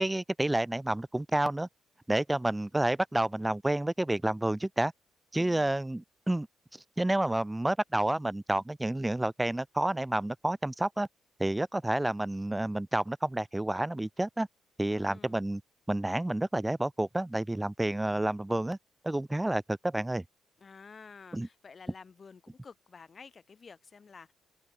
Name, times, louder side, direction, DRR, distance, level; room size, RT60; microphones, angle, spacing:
voice 1, 0.0-1.7 2.1-4.9 5.3-6.5 7.0-11.1 11.4-14.5 14.8-15.6 15.9-18.8 19.0-20.2 21.3-21.5, right 1 dB, 10° right, 0.6 m, -29 dB
voice 2, 5.4-5.8 14.9-15.4 20.6-24.3, left 5 dB, 40° left, 2.1 m, -51 dB
cardioid pair, 90°, 0 cm